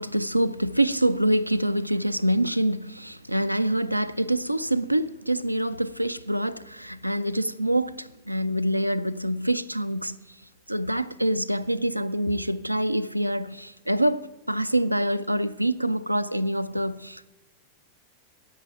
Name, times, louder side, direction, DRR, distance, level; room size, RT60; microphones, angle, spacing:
voice 1, 0.0-10.2 10.7-17.3, right 1 dB, 90° right, 0.4 m, -26 dB
10.0 x 8.8 x 9.1 m
figure-of-eight pair, 90°, 0 cm